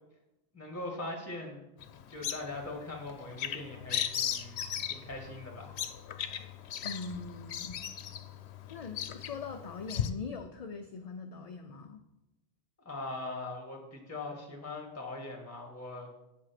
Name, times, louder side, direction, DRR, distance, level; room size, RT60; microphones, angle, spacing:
voice 1, 0.5-1.7 2.1-5.8 12.8-16.1, left 2 dB, 15° left, 1 dB, 1.7 m, -41 dB
Bird vocalization bird call bird song, 1.8-10.1, left 9 dB, 80° left, 0.9 m, -37 dB
voice 2, 6.8-7.8 8.7-12.0, left 4 dB, 45° left, 5 dB, 0.6 m, -42 dB
7.9 x 7.7 x 5.8 m, 0.92 s
omnidirectional pair, 1.1 m